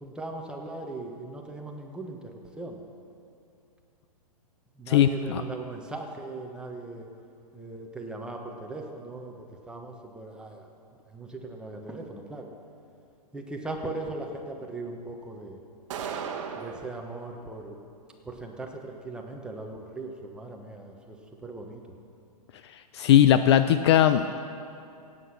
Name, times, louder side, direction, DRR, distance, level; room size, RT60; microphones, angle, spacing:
voice 1, 0.0-2.8 4.8-7.1 7.5-10.7 11.1-12.5 13.3-15.6 16.6-17.8 18.2-21.8, right 2 dB, 5° right, 1 dB, 1.1 m, -39 dB
voice 2, 4.9-5.4 22.9-24.3, left 10 dB, 40° left, 10 dB, 0.5 m, -19 dB
sound 1, 15.9-16.9, right 6 dB, 50° right, 1.2 m, -35 dB
17.5 x 8.6 x 6.0 m, 2.5 s
hypercardioid pair, 140°, 20 cm